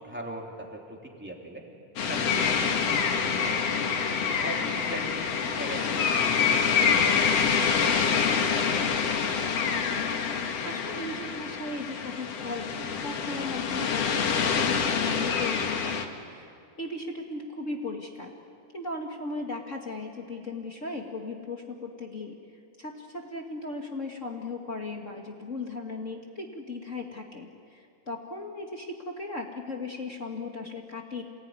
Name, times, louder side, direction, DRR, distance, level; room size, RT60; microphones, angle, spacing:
voice 1, 0.0-1.7 2.1-3.6 4.2-5.8 6.1-8.9, right 1 dB, 5° right, -1 dB, 2.8 m, -41 dB
sound 1, 2.0-16.0, left 6 dB, 55° left, 2.3 m, -26 dB
voice 2, 9.7-10.2 10.6-16.5 16.8-18.3 18.7-22.4 22.8-31.2, left 3 dB, 35° left, 1 dB, 1.4 m, -37 dB
28.0 x 19.5 x 9.7 m, 2.4 s
omnidirectional pair, 3.7 m